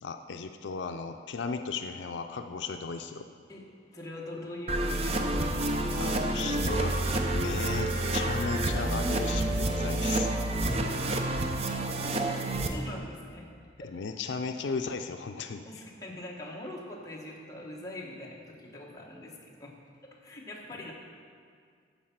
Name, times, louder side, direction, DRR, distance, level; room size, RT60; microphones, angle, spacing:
voice 1, 0.0-3.2 5.9-6.9 7.3-10.3 13.8-15.8, left 5 dB, 80° left, 7 dB, 0.4 m, -36 dB
voice 2, 3.5-5.6 12.7-14.0 15.6-19.8 20.0-20.9, left 1 dB, 20° left, -2 dB, 1.3 m, -43 dB
sound 1, 4.7-12.7, right 1 dB, 35° right, 0.7 m, -29 dB
14.0 x 4.7 x 5.8 m, 2.1 s
head